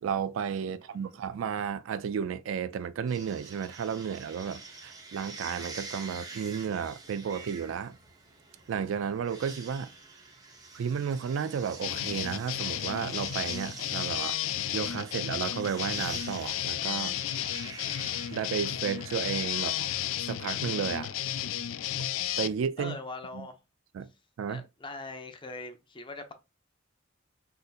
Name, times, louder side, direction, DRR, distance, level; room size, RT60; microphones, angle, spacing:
voice 1, 0.0-8.0 8.7-9.9 10.7-14.4 14.7-17.2 18.3-19.9 20.2-21.1 22.4-23.0 23.3-23.5 23.9-24.1 24.4-24.6, right 7 dB, 85° right, 0.3 m, -33 dB
sound 1, 3.1-20.1, right 3 dB, 20° right, 0.8 m, -46 dB
sound 2, 11.8-22.5, left 12 dB, 90° left, 0.3 m, -33 dB
voice 2, 22.8-23.6 24.5-26.3, left 3 dB, 25° left, 0.6 m, -41 dB
4.0 x 2.7 x 2.4 m
head